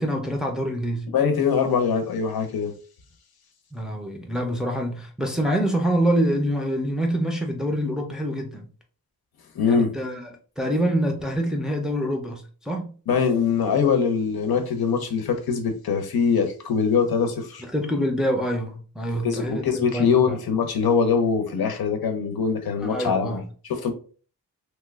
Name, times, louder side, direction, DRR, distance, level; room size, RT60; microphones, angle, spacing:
voice 1, 0.0-1.1 3.7-8.7 9.7-10.2 10.6-12.9 17.6-20.4 22.8-23.4, equal, ahead, 0.4 m, -26 dB
voice 2, 1.1-2.7 9.5-9.9 13.1-17.6 19.2-23.9, left 6 dB, 85° left, 0.7 m, -23 dB
3.0 x 2.2 x 3.3 m
wide cardioid pair, 165°, 36 cm